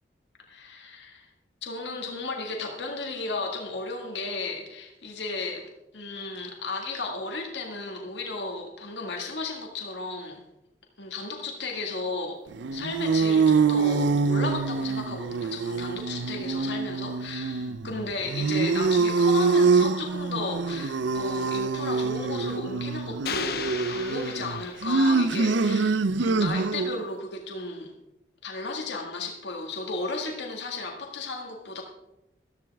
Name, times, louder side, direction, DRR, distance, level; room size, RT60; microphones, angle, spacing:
voice 1, 0.5-1.3 1.6-5.6 5.9-10.4 11.0-12.4 12.7-27.9 28.4-31.8, left 3 dB, 75° left, 2 dB, 1.8 m, -34 dB
sound 1, 12.5-27.0, right 4 dB, 80° right, 0.5 m, -25 dB
sound 2, 23.3-25.4, left 7 dB, 55° left, 0.7 m, -36 dB
14.0 x 13.5 x 3.5 m, 0.91 s
head